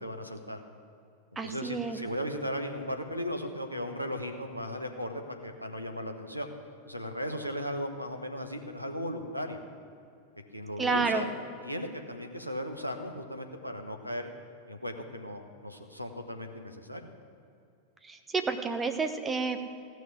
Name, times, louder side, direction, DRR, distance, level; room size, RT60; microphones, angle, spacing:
voice 1, 0.0-0.6 1.4-6.5 6.9-9.6 10.5-11.3 11.6-14.3 14.7-17.1, equal, 90° right, 5 dB, 1.2 m, -36 dB
voice 2, 1.4-2.0 10.8-11.2 18.1-19.6, right 4 dB, 15° right, 7 dB, 1.1 m, -30 dB
15.5 x 6.3 x 9.7 m, 2.5 s
figure-of-eight pair, 90°, 0 cm